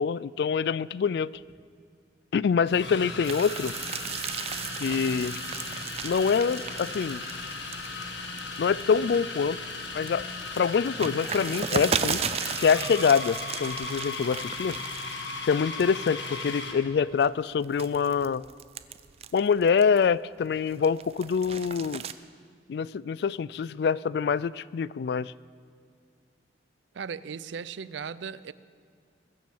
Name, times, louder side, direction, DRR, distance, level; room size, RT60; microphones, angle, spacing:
voice 1, 0.0-1.4 2.3-3.8 4.8-5.4 6.0-7.2 8.6-9.6 9.9-10.3 10.6-12.2 12.6-14.8 15.5-18.4 19.3-22.0 22.7-25.3, left 6 dB, 65° left, 21 dB, 0.3 m, -25 dB
sound 1, 1.4-1.5 2.7-16.9, left 3 dB, 85° left, 1.6 m, -37 dB
sound 2, 3.2-9.2 9.6-15.5 15.8-16.3 16.8-20.1 20.6-22.1, right 7 dB, 35° right, 0.4 m, -35 dB
voice 2, 26.9-28.5, right 6 dB, 90° right, 17 dB, 0.5 m, -37 dB
21.5 x 7.4 x 7.2 m, 2.3 s
head